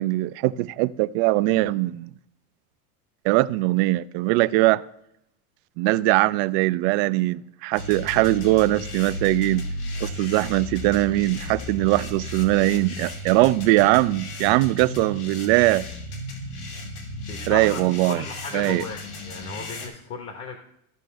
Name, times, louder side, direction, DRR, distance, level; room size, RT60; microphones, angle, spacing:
voice 1, 0.0-2.1 3.2-4.8 5.8-9.7 10.0-15.8 17.5-18.2 18.5-18.9, right 19 dB, 45° right, 0.5 m, -21 dB
sound 1, 7.8-19.9, left 1 dB, 80° left, 2.6 m, -34 dB
voice 2, 17.3-17.8 18.1-19.0 19.2-20.6, left 4 dB, 30° left, 1.1 m, -35 dB
15.0 x 5.2 x 3.4 m
supercardioid pair, 130°, 45 cm